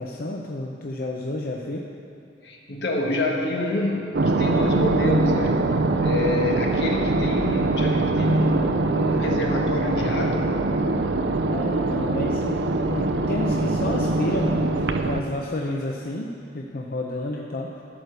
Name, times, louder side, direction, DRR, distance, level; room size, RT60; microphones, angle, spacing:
voice 1, 0.0-1.8 11.5-17.8, left 1 dB, 55° left, -1 dB, 0.7 m, -30 dB
voice 2, 2.4-5.7 6.0-10.6, left 1 dB, 75° left, 0 dB, 1.4 m, -28 dB
sound 1, 4.1-15.2, right 2 dB, 85° right, 0.6 m, -23 dB
13.5 x 5.0 x 6.8 m, 2.5 s
head